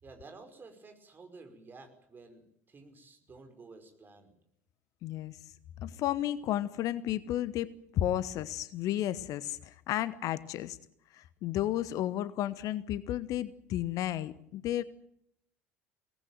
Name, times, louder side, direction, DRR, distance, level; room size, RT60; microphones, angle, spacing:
voice 1, 0.0-4.4, right 3 dB, 25° right, 6 dB, 5.4 m, -52 dB
voice 2, 5.0-5.4 5.8-10.8 11.1-14.8, left 12 dB, 50° left, 18 dB, 0.9 m, -33 dB
23.5 x 18.5 x 9.2 m, 0.74 s
figure-of-eight pair, 65°, 8 cm